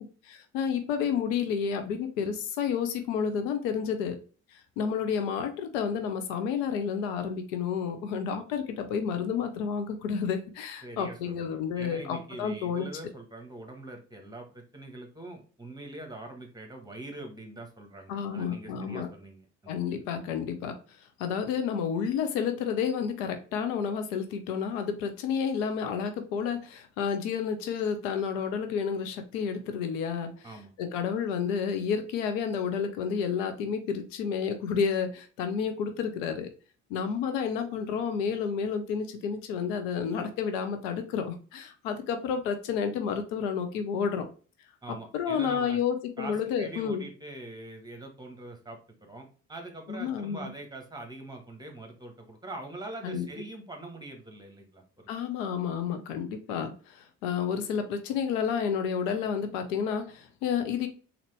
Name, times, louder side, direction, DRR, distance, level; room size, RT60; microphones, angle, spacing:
voice 1, 0.3-4.2 4.5-12.9 18.1-19.1 19.7-20.8 21.2-30.5 30.8-36.5 36.9-44.3 45.1-47.1 49.9-50.5 53.0-53.3 55.1-60.9, left 7 dB, 75° left, 0.7 m, -30 dB
voice 2, 10.8-19.7 30.4-30.7 44.8-45.8 46.2-55.1, right 2 dB, 10° right, 1.4 m, -43 dB
3.9 x 2.8 x 3.3 m
hypercardioid pair, 50°, 38 cm